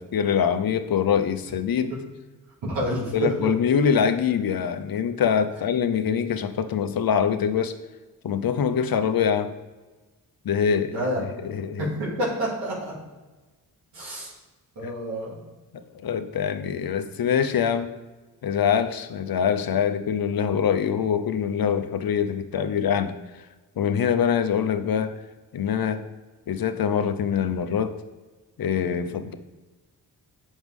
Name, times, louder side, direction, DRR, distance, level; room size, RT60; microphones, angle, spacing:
voice 1, 0.0-2.0 3.1-7.8 8.2-9.5 10.4-11.9 14.8-14.9 15.7-17.9 18.4-23.5 23.8-25.2 25.5-26.0 26.5-28.0 28.6-29.3, left 7 dB, 55° left, 9 dB, 0.8 m, -24 dB
voice 2, 2.6-3.3 10.9-11.2 11.8-12.9 13.9-14.3 14.8-15.4, right 1 dB, 85° right, -7 dB, 2.5 m, -28 dB
7.8 x 6.3 x 3.7 m, 1.2 s
supercardioid pair, 50°, 42 cm